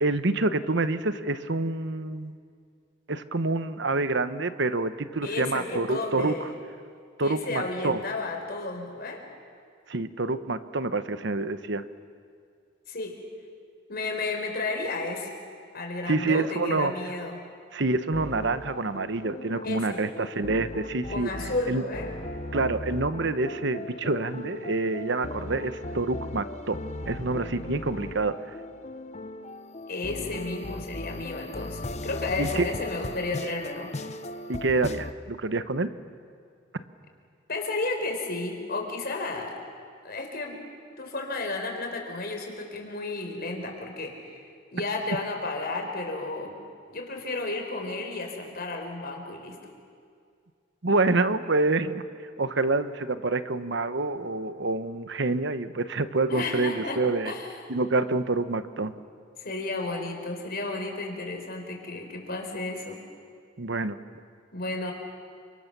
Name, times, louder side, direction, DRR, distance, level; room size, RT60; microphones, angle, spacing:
voice 1, 0.0-2.4 3.1-6.5 7.2-8.0 9.9-11.8 16.1-16.9 17.7-21.3 21.7-21.8 22.5-26.8 27.1-28.4 32.4-32.7 34.5-35.9 50.8-52.0 52.4-57.3 57.7-58.9 63.6-64.0, right 3 dB, 60° right, 11 dB, 1.1 m, -27 dB
voice 2, 5.2-6.5 7.2-9.2 12.9-13.2 13.9-15.3 15.7-17.4 19.6-20.0 21.1-22.1 29.9-33.9 37.5-39.5 40.0-40.6 41.0-44.4 44.7-46.5 46.9-49.6 56.3-57.6 59.4-63.0 64.5-64.9, left 2 dB, 50° left, 3 dB, 4.5 m, -32 dB
sound 1, 18.1-35.1, left 2 dB, 35° left, 0.8 m, -38 dB
29.5 x 26.0 x 6.9 m, 2.2 s
head